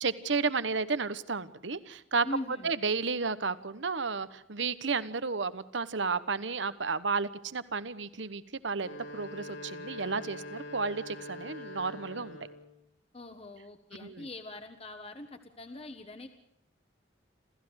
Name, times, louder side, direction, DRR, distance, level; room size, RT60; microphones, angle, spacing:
voice 1, 0.0-12.4 14.0-14.3, right 4 dB, 75° right, 15 dB, 1.2 m, -32 dB
voice 2, 2.2-2.7 13.1-16.4, left 1 dB, 30° left, 7 dB, 1.3 m, -42 dB
sound 1, 8.7-12.7, left 1 dB, 80° left, 5.3 m, -44 dB
27.5 x 15.0 x 6.4 m, 0.81 s
head